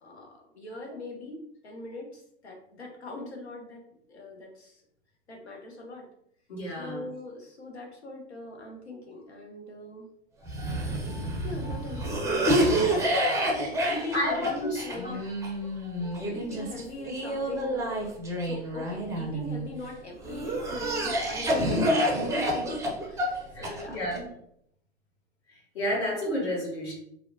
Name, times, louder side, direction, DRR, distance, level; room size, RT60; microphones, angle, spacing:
voice 1, 0.0-3.8 4.1-4.8 5.3-6.0 6.8-10.1 10.6-10.7 11.4-13.1 13.9-15.3 16.2-18.1 18.4-24.0, left 1 dB, 90° left, 1 dB, 0.7 m, -40 dB
voice 2, 6.5-7.0 14.1-15.1 23.5-24.2 25.7-26.9, left 1 dB, 75° left, -4 dB, 1.2 m, -31 dB
Cough, 10.4-19.7 20.2-24.2, right 1 dB, 10° right, 0.5 m, -28 dB
2.8 x 2.1 x 2.5 m, 0.73 s
hypercardioid pair, 95°, 32 cm